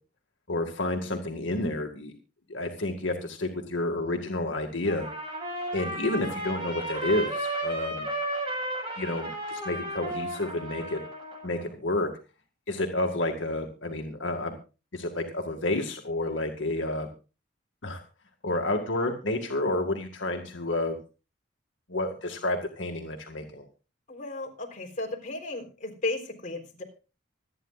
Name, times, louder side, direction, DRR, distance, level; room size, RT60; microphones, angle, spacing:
voice 1, 0.5-2.1 2.5-5.1 5.7-8.1 9.0-11.0 11.4-12.1 12.7-14.6 14.9-17.1 17.8-18.0 18.4-21.0 21.9-23.6, left 2 dB, 80° left, 3 dB, 1.9 m, -30 dB
Trumpet, 4.9-11.6, right 1 dB, 25° right, 7.1 m, -34 dB
voice 2, 24.1-26.8, left 2 dB, 40° left, 1 dB, 3.7 m, -34 dB
25.5 x 9.4 x 2.4 m, 0.33 s
head